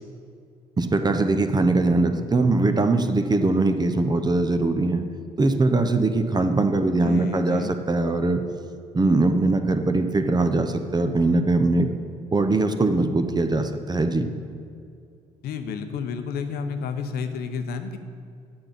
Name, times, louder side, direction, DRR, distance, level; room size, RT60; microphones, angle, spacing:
voice 1, 0.8-5.0 5.4-8.4 8.9-11.9 12.3-14.3, right 2 dB, 25° right, 7 dB, 0.7 m, -21 dB
voice 2, 7.0-7.8 15.4-18.0, left 6 dB, 65° left, 8 dB, 0.8 m, -31 dB
8.8 x 6.0 x 5.2 m, 2.3 s
hypercardioid pair, 55°, 17 cm